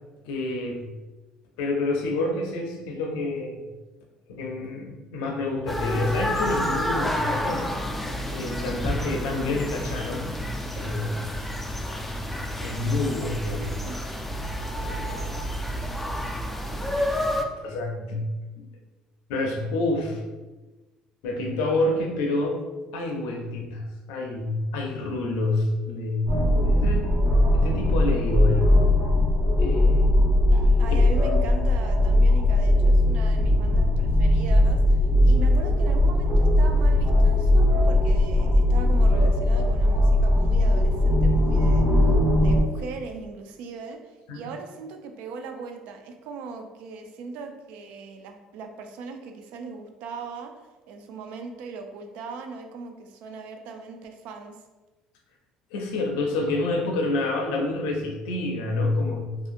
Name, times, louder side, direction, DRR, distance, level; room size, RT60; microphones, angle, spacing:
voice 1, 0.2-0.9 1.6-3.6 4.3-7.7 8.3-10.3 10.7-11.2 12.6-13.7 14.8-15.4 15.8-15.9 17.6-18.3 18.6-18.7 19.3-20.2 21.2-22.6 22.9-26.3 26.6-27.1 27.5-28.8 29.6-30.1 30.9-31.0 44.3-44.5 55.7-59.4, left 2 dB, 90° left, 2 dB, 0.5 m, -28 dB
sound 1, 5.7-17.5, equal, 5° left, 0.3 m, -29 dB
voice 2, 13.6-14.0 14.6-14.7 30.8-41.9 42.3-50.5 50.9-54.6, right 4 dB, 80° right, 5 dB, 0.3 m, -39 dB
sound 2, 26.3-42.6, left 1 dB, 55° right, 1.5 m, -19 dB
2.7 x 2.4 x 2.4 m, 1.2 s
supercardioid pair, 95°, 2 cm